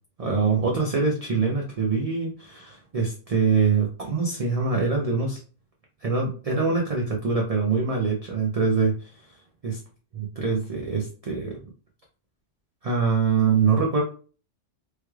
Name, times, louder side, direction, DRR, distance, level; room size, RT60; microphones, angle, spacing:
voice 1, 0.2-5.4 6.0-9.1 9.6-9.8 10.4-11.6 12.8-14.0, right 5 dB, 40° right, -1 dB, 0.5 m, -24 dB
3.2 x 3.1 x 2.3 m, 0.39 s
omnidirectional pair, 1.2 m